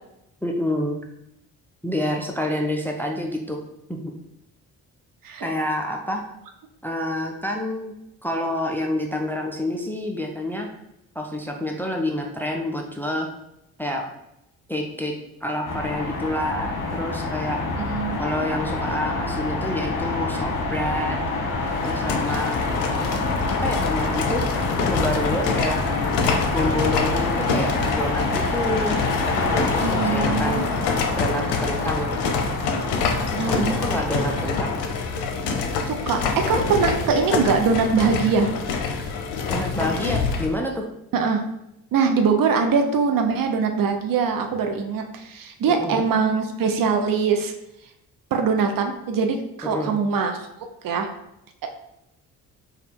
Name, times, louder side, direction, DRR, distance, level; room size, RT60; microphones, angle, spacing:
voice 1, 0.4-1.0 1.8-3.6 3.9-4.1 5.4-6.2 6.8-7.9 8.2-10.7 11.1-13.3 13.8-14.1 14.7-15.1 15.4-17.6 18.2-21.2 21.8-22.5 23.5-24.4 24.9-25.8 26.5-30.7 31.1-32.2 32.6-33.1 33.5-34.8 39.5-40.9 45.7-46.0 49.6-50.0, left 1 dB, 5° left, 2 dB, 0.5 m, -28 dB
sound 1, 15.7-34.9, left 3 dB, 45° left, 1.0 m, -27 dB
voice 2, 17.8-18.2 29.8-30.7 33.4-33.8 35.8-36.2 36.5-38.5 41.1-41.4 41.9-47.5 48.3-50.4 50.8-51.1, right 5 dB, 50° right, 5 dB, 0.6 m, -22 dB
sound 2, 21.7-40.5, left 5 dB, 65° left, 0.6 m, -27 dB
3.4 x 2.4 x 4.4 m, 0.83 s
hypercardioid pair, 45°, 44 cm